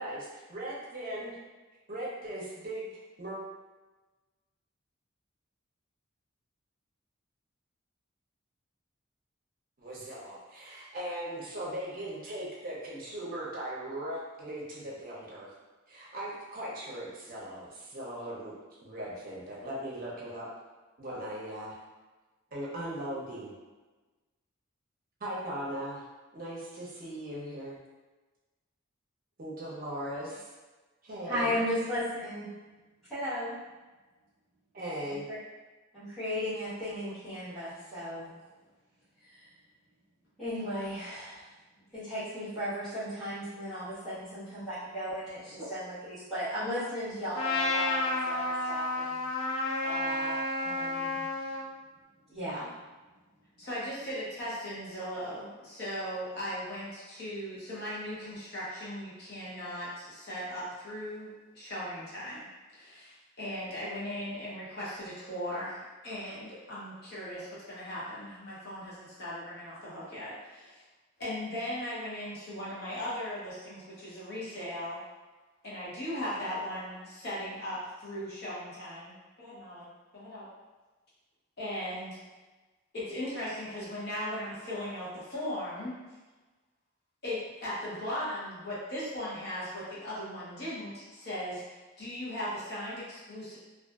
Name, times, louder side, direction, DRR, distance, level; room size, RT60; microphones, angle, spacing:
voice 1, 0.0-1.4 1.9-3.4 9.8-15.5 15.9-18.5 18.8-20.5 21.0-21.7 22.5-23.5 25.2-26.0 26.3-27.8 29.4-30.4 31.0-31.6 34.7-35.3, right 1 dB, 40° right, -5 dB, 0.6 m, -39 dB
voice 2, 31.2-32.5 33.1-33.5 35.3-35.4 35.9-38.3 39.2-39.5 40.4-41.4 41.9-49.2 49.8-51.2 52.3-52.7, equal, ahead, -17 dB, 1.0 m, -35 dB
Trumpet, 47.4-51.6, left 2 dB, 75° left, 0.4 m, -31 dB
voice 3, 53.6-70.8 71.2-75.0 75.6-80.5 81.6-82.2 82.9-85.9 87.2-93.6, equal, 50° left, -9 dB, 0.9 m, -38 dB
2.4 x 2.4 x 2.3 m, 1.2 s
head